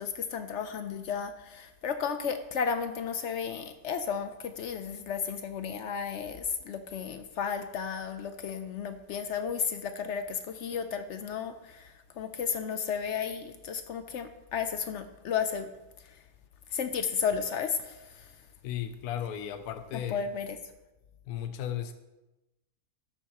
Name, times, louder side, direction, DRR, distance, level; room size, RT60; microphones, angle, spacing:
voice 1, 0.0-15.7 16.0-16.2 16.7-18.3 20.1-20.6, left 7 dB, 65° left, 9 dB, 0.7 m, -33 dB
voice 2, 18.6-20.3 21.3-21.9, left 10 dB, 85° left, 9 dB, 1.1 m, -35 dB
13.0 x 7.0 x 2.9 m, 1.0 s
omnidirectional pair, 1.6 m